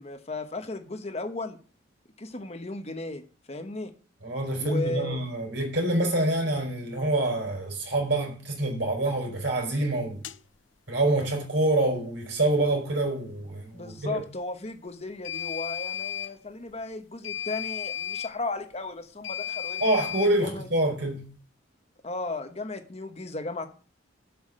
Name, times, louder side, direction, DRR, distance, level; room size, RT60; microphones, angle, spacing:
voice 1, 0.0-1.6 2.2-3.9 4.6-5.2 13.7-19.8 20.4-20.7 22.0-23.7, left 2 dB, 35° left, 1.1 m, -35 dB
voice 2, 4.2-10.2 10.9-14.2 19.8-21.3, right 1 dB, 60° right, 4.7 m, -26 dB
sound 1, 10.2-10.4 15.2-16.3 17.2-18.3 19.2-20.3, left 10 dB, 75° left, 0.7 m, -34 dB
8.0 x 7.1 x 7.7 m
head